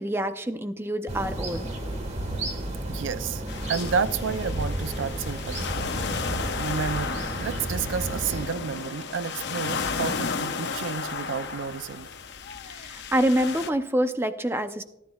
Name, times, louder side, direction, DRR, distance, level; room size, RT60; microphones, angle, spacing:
voice 1, 0.0-1.7 12.7-14.8, equal, 10° right, 0.5 m, -26 dB
sound 1, 1.1-8.5, right 1 dB, 35° right, 1.4 m, -32 dB
voice 2, 2.9-3.4 3.7-5.7 6.6-12.1, right 6 dB, 75° right, 0.4 m, -30 dB
sound 2, 3.5-13.7, left 5 dB, 60° left, 0.8 m, -33 dB
17.5 x 10.5 x 2.3 m
head